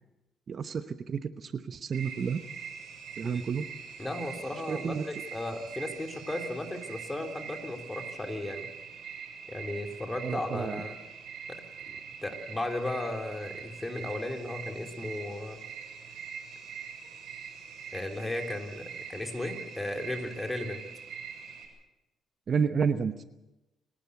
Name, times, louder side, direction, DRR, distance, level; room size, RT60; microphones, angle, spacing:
voice 1, 0.5-2.4 3.2-3.6 4.7-5.0 10.2-10.8 22.5-23.2, right 6 dB, 50° right, 10 dB, 1.0 m, -30 dB
sound 1, 1.9-21.7, right 6 dB, 75° right, 7.5 m, -43 dB
voice 2, 4.0-8.7 9.5-11.0 11.5-11.6 12.2-15.6 17.9-20.8, left 1 dB, 15° left, 4 dB, 3.6 m, -35 dB
28.0 x 12.0 x 8.3 m, 0.98 s
cardioid pair, 90°, 0 cm